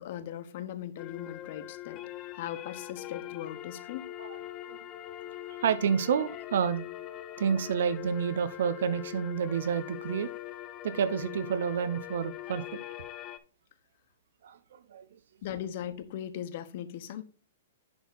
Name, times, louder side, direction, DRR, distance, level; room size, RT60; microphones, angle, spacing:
voice 1, 0.0-2.0 2.3-4.1 15.4-17.2, left 10 dB, 55° left, 1.2 m, -39 dB
sound 1, 1.0-13.4, left 14 dB, 30° left, 0.7 m, -42 dB
voice 2, 5.6-6.9 7.4-10.3 10.8-12.8 14.4-14.6 14.9-15.1, right 7 dB, 70° right, 0.9 m, -29 dB
11.0 x 3.9 x 4.0 m
hypercardioid pair, 145°, 0 cm